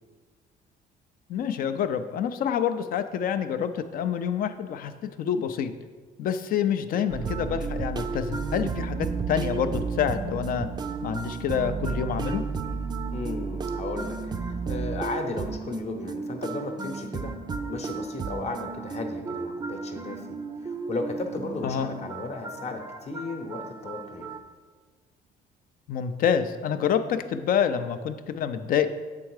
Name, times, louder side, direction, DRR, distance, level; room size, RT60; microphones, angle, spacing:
voice 1, 1.3-5.7 6.2-10.7 11.0-12.4 21.6-21.9 25.9-28.9, left 8 dB, 60° left, 10 dB, 0.5 m, -27 dB
sound 1, 7.1-24.4, right 5 dB, 25° right, 0.4 m, -33 dB
voice 2, 13.1-17.3 17.7-20.4 20.6-24.3, left 3 dB, 40° left, 5 dB, 0.9 m, -35 dB
7.6 x 3.6 x 4.8 m, 1.5 s
cardioid pair, 110°, 17 cm